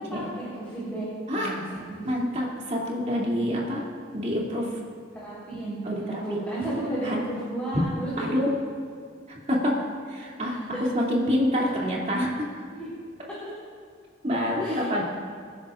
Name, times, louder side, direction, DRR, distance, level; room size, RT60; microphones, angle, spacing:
voice 1, 0.0-2.1 3.7-4.0 5.2-8.1 12.7-12.9 14.6-15.0, right 1 dB, 10° left, -10 dB, 4.0 m, -33 dB
voice 2, 1.3-1.6 2.0-3.8 4.1-4.8 5.8-6.2 7.0-7.2 8.2-8.6 9.3-12.5 14.2-15.0, equal, 35° right, -3 dB, 2.7 m, -27 dB
26.5 x 10.5 x 2.5 m, 2.2 s
head